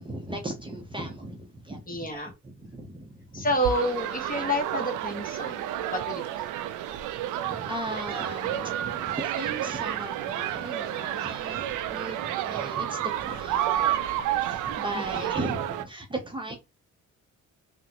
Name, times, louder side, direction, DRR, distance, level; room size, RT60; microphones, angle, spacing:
voice 1, 0.0-3.5 7.4-13.9 14.1-16.6, right 1 dB, 15° right, 0.7 m, -37 dB
voice 2, 1.9-2.3 3.3-6.5 14.9-15.3, equal, 30° left, 1.1 m, -30 dB
sound 1, 3.6-15.8, right 11 dB, 85° right, 0.5 m, -30 dB
3.7 x 2.1 x 2.9 m
cardioid pair, 90°, 30 cm